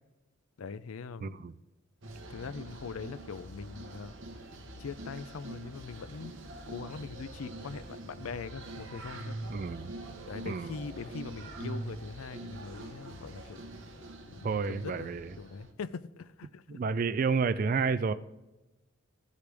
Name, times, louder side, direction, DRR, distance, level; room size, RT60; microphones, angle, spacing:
voice 1, 0.6-1.5 2.3-4.1 4.8-6.3 6.7-9.4 10.3-13.6 14.3-15.1 15.4-16.8, left 5 dB, 85° left, 16 dB, 0.5 m, -42 dB
voice 2, 1.2-1.5 9.5-9.9 10.4-10.8 14.4-15.3 16.7-18.1, right 5 dB, 40° right, 13 dB, 0.3 m, -30 dB
sound 1, 2.0-15.7, right 2 dB, 65° right, 1.2 m, -44 dB
15.5 x 8.2 x 3.4 m, 1.0 s
head